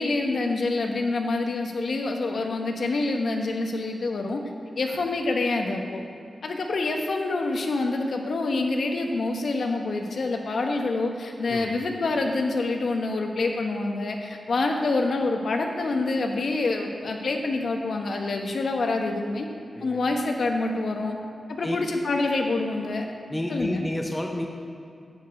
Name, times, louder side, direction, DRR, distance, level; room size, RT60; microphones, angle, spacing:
voice 1, 0.0-4.4 4.8-6.0 6.4-19.5 19.8-21.2 21.5-23.0 23.5-23.8, left 3 dB, 65° left, 3 dB, 1.2 m, -26 dB
voice 2, 23.3-24.5, left 1 dB, 10° left, 2 dB, 0.8 m, -30 dB
11.0 x 5.2 x 8.2 m, 2.6 s
wide cardioid pair, 115°, 0 cm